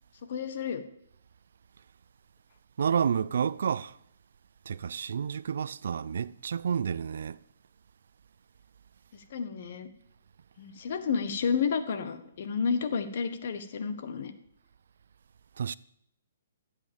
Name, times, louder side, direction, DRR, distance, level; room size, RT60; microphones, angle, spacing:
voice 1, 0.3-0.8 9.3-9.9 10.6-14.3, left 6 dB, 50° left, 1.5 m, -31 dB
voice 2, 2.8-4.0 4.7-7.4 15.6-15.7, right 7 dB, 70° right, 0.4 m, -30 dB
13.5 x 8.3 x 7.2 m
hypercardioid pair, 160°, 0 cm